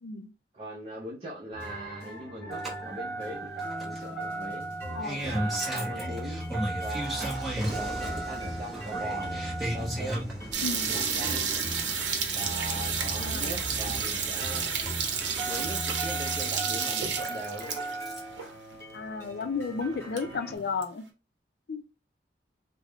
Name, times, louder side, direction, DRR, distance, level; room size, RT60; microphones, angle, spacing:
voice 1, 0.5-4.7 5.1-6.5 6.8-9.4 9.7-10.3 10.9-11.5 12.3-14.7 15.5-17.8, right 1 dB, 30° right, 0.6 m, -40 dB
sound 1, 1.5-20.6, equal, 15° left, 1.5 m, -41 dB
Engine starting, 2.5-18.4 19.7-19.8, right 1 dB, ahead, 0.9 m, -35 dB
sound 2, 10.5-18.0 18.4-18.5 18.7-18.8 19.4-19.5 19.8-20.8, right 6 dB, 90° right, 0.7 m, -31 dB
voice 2, 10.6-10.9 13.2-13.6 18.9-21.0 21.7-21.8, left 4 dB, 60° left, 0.4 m, -33 dB
3.5 x 2.1 x 3.3 m
head